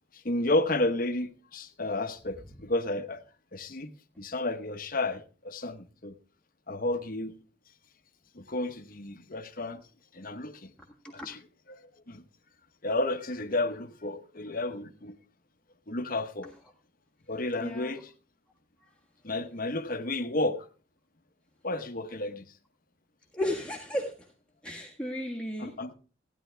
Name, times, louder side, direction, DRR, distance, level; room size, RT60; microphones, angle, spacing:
voice 1, 0.1-3.2 3.5-3.9 4.2-6.2 6.7-7.3 8.3-9.8 10.1-10.7 11.2-11.4 11.7-11.8 12.1-12.2 12.8-15.2 15.9-16.5 17.3-18.1 19.2-20.6 21.6-22.4 25.6-25.9, left 2 dB, 45° left, 1.1 m, -31 dB
voice 2, 17.6-18.0 23.3-24.1 24.6-25.7, left 1 dB, 5° left, 1.6 m, -33 dB
16.0 x 10.5 x 3.4 m
head